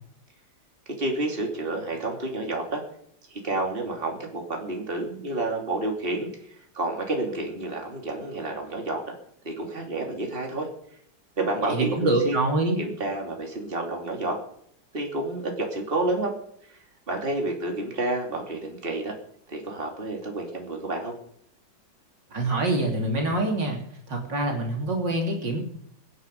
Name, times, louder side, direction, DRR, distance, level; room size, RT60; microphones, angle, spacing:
voice 1, 1.0-2.8 3.3-6.3 6.7-9.0 9.4-10.7 11.4-12.4 12.8-14.4 14.9-16.3 16.7-16.8 17.1-19.1 19.5-21.1, right 2 dB, 30° right, 1 dB, 3.2 m, -29 dB
voice 2, 11.6-12.8 22.3-23.8 24.1-25.6, right 2 dB, 65° right, 1 dB, 3.6 m, -25 dB
24.0 x 9.9 x 5.4 m, 0.67 s
omnidirectional pair, 2.1 m